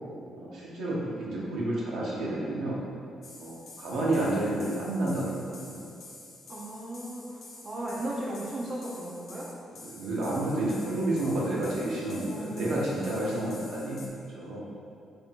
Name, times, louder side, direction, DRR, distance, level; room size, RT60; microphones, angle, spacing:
voice 1, 0.4-2.8 3.4-5.9 9.8-14.7, right 1 dB, 75° right, -5 dB, 0.9 m, -30 dB
sound 1, 3.2-14.1, left 2 dB, 55° left, 0.6 m, -49 dB
voice 2, 6.5-7.3 7.6-9.5 12.3-12.7 13.0-13.5, right 1 dB, 40° right, -6 dB, 0.7 m, -36 dB
3.3 x 2.6 x 4.4 m, 2.5 s
cardioid pair, 90°, 0 cm